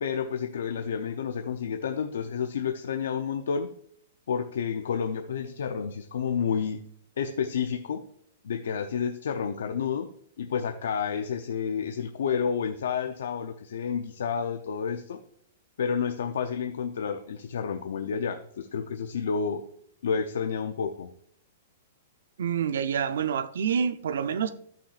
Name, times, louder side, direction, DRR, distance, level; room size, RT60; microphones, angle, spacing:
voice 1, 0.0-3.7 4.3-6.8 7.2-8.0 8.4-10.1 10.4-15.2 15.8-19.6 20.0-21.1, left 6 dB, 80° left, 0.6 m, -30 dB
voice 2, 22.4-24.5, right 7 dB, 75° right, 0.5 m, -27 dB
13.0 x 5.8 x 2.5 m
hypercardioid pair, 175°, 0 cm